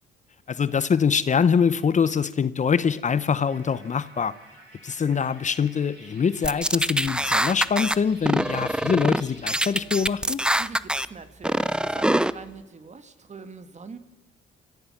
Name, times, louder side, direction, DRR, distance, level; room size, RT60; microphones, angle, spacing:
voice 1, 0.5-4.3 4.8-10.4, left 6 dB, 40° left, 0.8 m, -24 dB
sound 1, 3.5-9.8, right 2 dB, 55° right, 8.0 m, -50 dB
sound 2, 6.4-8.0 8.3-9.2 9.5-11.1 11.4-12.3, right 1 dB, 5° right, 0.6 m, -24 dB
voice 2, 10.6-14.0, right 4 dB, 35° right, 1.8 m, -42 dB
29.5 x 14.5 x 7.3 m
cardioid pair, 90°, 20 cm